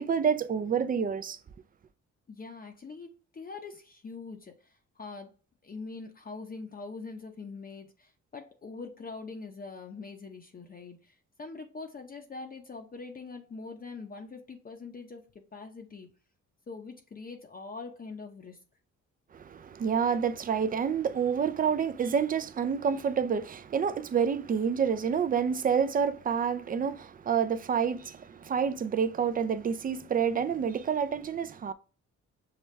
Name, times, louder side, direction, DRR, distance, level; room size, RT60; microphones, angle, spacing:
voice 1, 0.0-1.4 19.3-31.7, right 7 dB, 30° right, 0.4 m, -28 dB
voice 2, 2.3-5.3 5.6-16.1 16.7-18.6, left 4 dB, 30° left, 0.7 m, -43 dB
6.6 x 2.2 x 3.1 m
cardioid pair, 90°, 30 cm